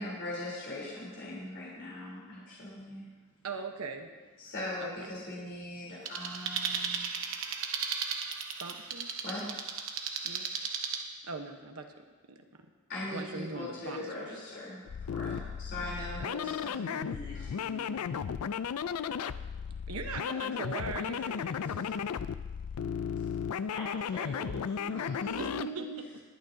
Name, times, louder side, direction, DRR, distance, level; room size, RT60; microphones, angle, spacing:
voice 1, 0.0-3.0 4.4-7.1 9.2-9.5 12.9-14.8 15.1-16.8 19.1-19.2 24.9-26.0, left 1 dB, 55° left, -7 dB, 3.6 m, -40 dB
voice 2, 3.4-4.1 4.8-5.1 8.6-9.2 10.2-10.5 11.2-12.4 13.1-14.4 16.2-16.4 19.9-22.1 25.4-26.2, right 3 dB, 85° right, 5 dB, 1.1 m, -41 dB
sound 1, 6.1-11.0, right 6 dB, 60° right, 1.0 m, -35 dB
sound 2, 14.9-25.7, left 7 dB, 90° left, 0.4 m, -35 dB
voice 3, 16.7-18.3 23.7-25.5, left 1 dB, 25° left, -6 dB, 3.3 m, -45 dB
22.0 x 9.2 x 2.8 m, 1.3 s
head